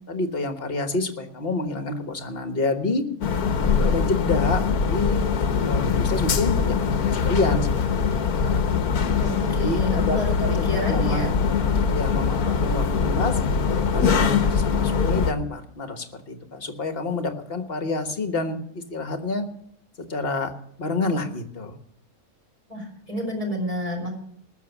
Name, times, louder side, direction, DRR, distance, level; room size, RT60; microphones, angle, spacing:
voice 1, 0.1-3.0 3.8-5.2 5.7-7.7 7.9-8.0 8.3-8.6 9.5-11.2 11.9-13.4 13.9-19.5 20.0-20.5 20.8-21.8, left 2 dB, 40° left, 6 dB, 1.6 m, -28 dB
sound 1, 3.2-15.3, left 6 dB, 85° left, 1.6 m, -22 dB
voice 2, 9.2-10.3 10.6-11.3 22.7-24.1, equal, 25° right, -1 dB, 3.9 m, -30 dB
19.5 x 7.0 x 7.1 m, 0.68 s
omnidirectional pair, 1.5 m